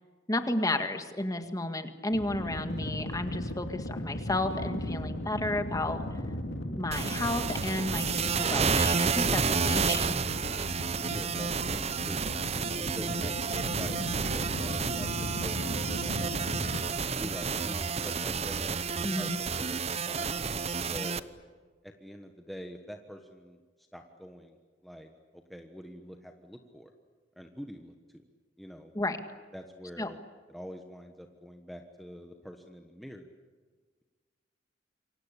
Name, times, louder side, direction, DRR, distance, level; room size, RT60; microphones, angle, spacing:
voice 1, 0.3-6.0 6.7-10.2 19.0-19.3 28.9-29.2 30.0-30.1, left 1 dB, 20° left, 7 dB, 1.9 m, -32 dB
sound 1, 2.1-16.8, left 1 dB, 85° left, 2.6 m, -37 dB
sound 2, 6.9-21.2, right 5 dB, 35° right, 0.8 m, -30 dB
voice 2, 11.1-12.3 12.5-16.5 17.1-19.8 20.0-21.2 21.8-23.6 23.9-24.6 24.8-26.9 27.4-28.2 28.6-28.9 29.5-30.2 30.5-33.3, equal, ahead, 3 dB, 1.3 m, -45 dB
28.0 x 24.0 x 8.5 m, 1.5 s
head